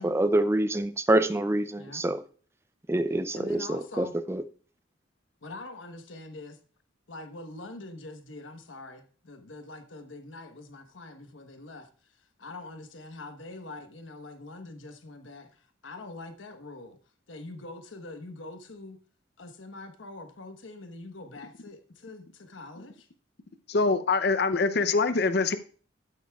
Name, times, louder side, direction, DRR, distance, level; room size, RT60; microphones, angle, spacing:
voice 1, 0.0-2.2 2.9-4.4, right 1 dB, 15° right, 0.4 m, -26 dB
voice 2, 3.3-4.1 5.4-6.6 7.1-17.0 17.3-19.0 19.4-23.1, left 2 dB, 80° left, 1.2 m, -44 dB
voice 3, 23.7-25.6, left 3 dB, 55° left, 0.6 m, -24 dB
13.0 x 8.0 x 2.4 m
head